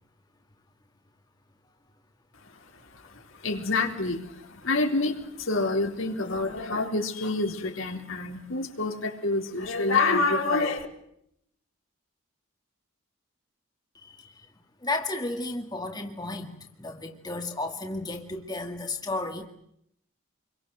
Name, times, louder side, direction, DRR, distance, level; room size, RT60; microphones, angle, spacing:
voice 1, 2.4-10.9, left 3 dB, 70° left, 3 dB, 4.0 m, -28 dB
voice 2, 13.9-14.5 14.8-19.5, left 2 dB, 20° left, 3 dB, 2.1 m, -33 dB
27.5 x 23.5 x 7.8 m, 0.75 s
head